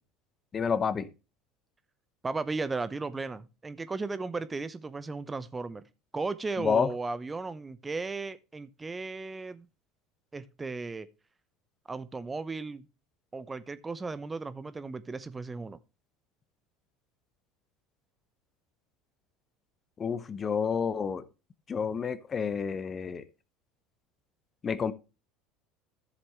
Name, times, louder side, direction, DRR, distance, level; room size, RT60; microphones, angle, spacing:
voice 1, 0.5-1.1 6.6-6.9 20.0-21.2 21.7-23.2 24.6-24.9, left 6 dB, 30° left, 0.9 m, -29 dB
voice 2, 2.2-5.8 6.1-9.7 10.3-11.1 11.9-12.9 13.3-15.8, right 3 dB, 20° right, 0.8 m, -35 dB
14.0 x 7.2 x 3.1 m
hypercardioid pair, 70°, 0 cm